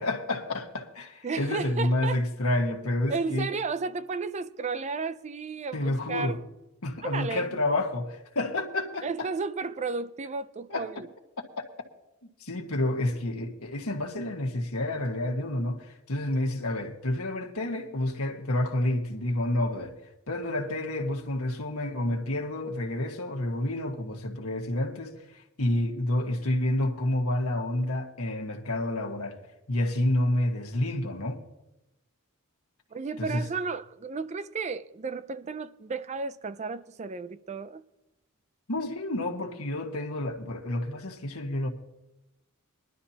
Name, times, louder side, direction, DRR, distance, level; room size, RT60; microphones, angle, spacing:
voice 1, 0.0-3.5 5.7-6.4 6.8-9.3 10.7-10.9 11.6-11.7 12.4-19.9 20.3-29.4 29.7-31.4 33.2-33.4 38.7-41.7, left 1 dB, 80° left, 1.7 m, -29 dB
voice 2, 1.2-2.2 3.1-6.4 7.0-7.6 9.0-11.1 32.9-37.8, right 4 dB, 30° right, 0.4 m, -33 dB
21.5 x 12.0 x 2.9 m
head